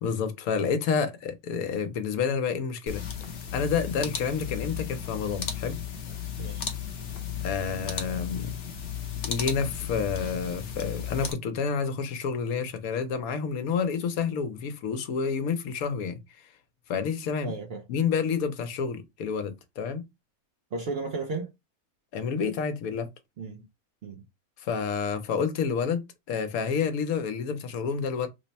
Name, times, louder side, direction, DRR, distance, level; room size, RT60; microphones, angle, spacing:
voice 1, 0.0-3.0 3.5-5.8 7.4-8.5 9.2-16.5 16.9-17.5 17.9-20.0 22.1-23.1 24.6-28.3, left 6 dB, 75° left, 1.1 m, -29 dB
sound 1, 2.9-11.3, left 8 dB, 55° left, 0.8 m, -35 dB
voice 2, 6.4-6.7 17.4-17.8 20.7-21.5 23.4-23.6 24.0-24.2, right 3 dB, 60° right, 0.6 m, -34 dB
3.3 x 2.1 x 4.0 m
omnidirectional pair, 1.5 m